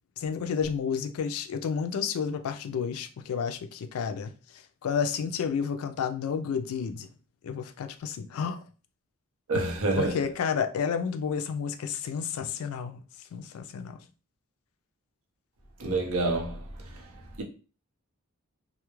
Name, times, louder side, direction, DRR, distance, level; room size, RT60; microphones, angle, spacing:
voice 1, 0.2-4.3 4.8-7.1 7.4-8.6 10.0-13.0 13.3-14.0, left 6 dB, 70° left, 0.3 m, -31 dB
voice 2, 9.5-10.2 15.8-16.6 17.4-17.5, right 2 dB, 65° right, 0.6 m, -27 dB
2.2 x 2.0 x 3.0 m
head